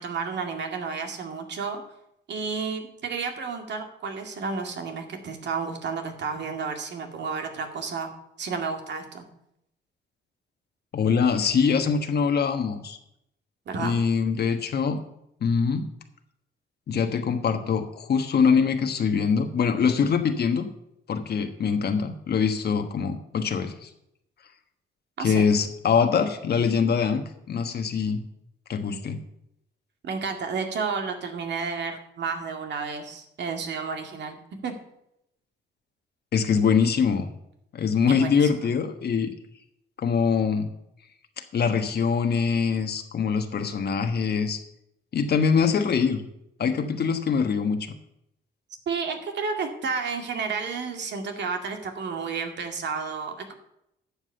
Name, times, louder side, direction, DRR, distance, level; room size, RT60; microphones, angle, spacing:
voice 1, 0.0-1.8 2.3-8.1 8.4-9.2 13.7-14.0 25.2-25.5 30.0-34.7 38.1-38.7 48.9-53.5, right 5 dB, 60° right, 4 dB, 2.2 m, -31 dB
voice 2, 10.9-13.0 13.8-15.0 15.4-15.9 16.9-20.7 21.1-23.9 25.2-28.2 28.7-29.2 36.3-37.3 37.7-39.3 40.0-40.7 41.5-44.6 45.1-46.2 46.6-47.9, left 6 dB, 55° left, 6 dB, 1.3 m, -23 dB
11.5 x 7.3 x 6.8 m, 0.80 s
cardioid pair, 90°, 20 cm